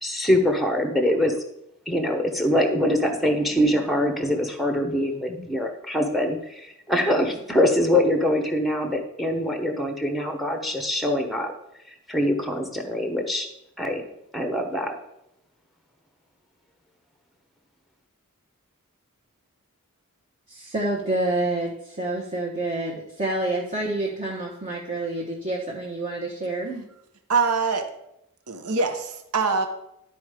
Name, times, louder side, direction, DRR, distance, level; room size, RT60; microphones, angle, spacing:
voice 1, 0.0-1.3 1.9-11.5 12.1-13.5 13.8-14.0 14.3-14.9, left 1 dB, ahead, 5 dB, 0.9 m, -23 dB
voice 2, 20.5-26.8, right 2 dB, 35° right, -3 dB, 1.2 m, -28 dB
voice 3, 27.3-27.9 28.5-29.7, right 4 dB, 80° right, 7 dB, 1.0 m, -23 dB
11.5 x 4.3 x 5.0 m, 0.82 s
head